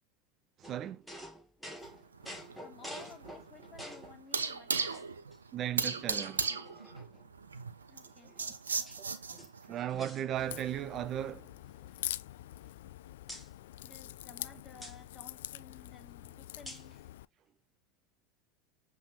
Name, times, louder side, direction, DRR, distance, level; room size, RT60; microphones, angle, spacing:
sound 1, 0.6-4.2 4.7-5.4 5.8-5.9 6.2-7.3 8.0-9.0 9.3-10.8 11.1-11.3 11.6-12.9 13.3-13.5 14.8-15.0 16.7-17.0, equal, ahead, 2.0 m, -49 dB
voice 1, 0.6-1.0 5.5-6.4 9.0-9.1 9.7-11.5, right 11 dB, 40° right, 0.6 m, -36 dB
sound 2, 1.8-9.7, right 5 dB, 85° right, 0.8 m, -37 dB
voice 2, 2.6-5.1 7.9-8.4 13.8-17.0, left 5 dB, 25° left, 3.2 m, -55 dB
Crack, 10.4-17.3, left 14 dB, 70° left, 0.3 m, -44 dB
7.6 x 3.5 x 3.6 m
hypercardioid pair, 80°, 0 cm